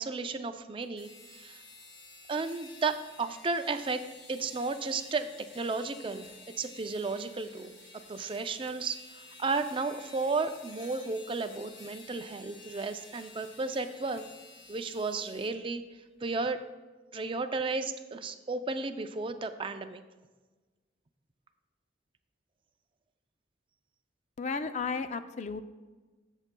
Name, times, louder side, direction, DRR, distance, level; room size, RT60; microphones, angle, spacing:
voice 1, 0.0-1.6 2.3-4.0 4.3-5.3 5.5-6.3 6.6-7.7 8.1-14.2 14.7-15.8 16.2-16.6 17.1-20.0, right 3 dB, 25° right, 8 dB, 0.4 m, -33 dB
sound 1, 0.8-15.5, left 3 dB, 50° left, 2.4 m, -52 dB
voice 2, 24.4-25.6, left 5 dB, 35° left, 10 dB, 0.4 m, -33 dB
13.5 x 7.2 x 2.2 m, 1.3 s
head